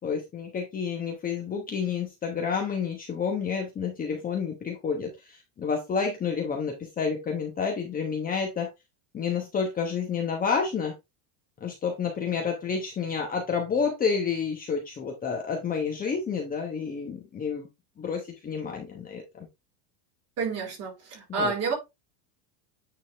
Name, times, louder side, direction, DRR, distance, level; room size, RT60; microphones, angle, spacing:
voice 1, 0.0-8.7 9.1-10.9 11.6-17.7 18.0-19.2 21.3-21.5, left 6 dB, 20° left, 1.1 m, -29 dB
voice 2, 20.4-21.7, right 4 dB, 30° right, 4.2 m, -29 dB
9.2 x 4.0 x 3.4 m
supercardioid pair, 160°, 47 cm